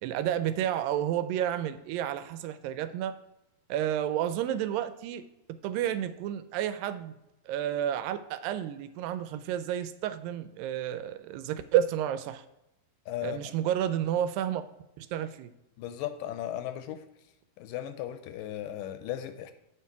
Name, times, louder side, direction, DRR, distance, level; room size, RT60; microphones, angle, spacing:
voice 1, 0.0-3.1 3.7-5.3 5.6-7.1 7.5-12.4 13.2-14.6 15.0-15.5, right 11 dB, 85° right, 12 dB, 2.2 m, -30 dB
voice 2, 13.1-13.5 15.8-17.0 17.6-19.5, left 12 dB, 80° left, 9 dB, 2.1 m, -36 dB
7.7 x 5.8 x 4.6 m, 0.90 s
omnidirectional pair, 4.1 m